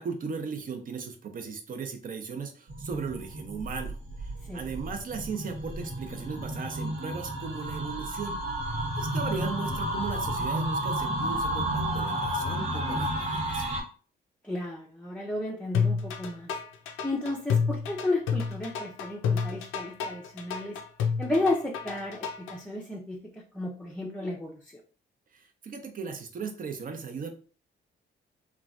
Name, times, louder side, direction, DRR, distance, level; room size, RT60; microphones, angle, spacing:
voice 1, 0.0-8.4 9.0-13.9 25.3-27.3, right 5 dB, 45° right, 5 dB, 0.6 m, -37 dB
sound 1, 2.7-13.8, right 1 dB, 75° right, 1.2 m, -32 dB
voice 2, 14.4-16.5 17.0-20.8 21.2-24.6, left 2 dB, 5° left, -3 dB, 0.5 m, -33 dB
sound 2, 15.7-22.6, left 6 dB, 90° left, 0.5 m, -29 dB
3.0 x 2.3 x 2.5 m, 0.39 s
cardioid pair, 90°, 20 cm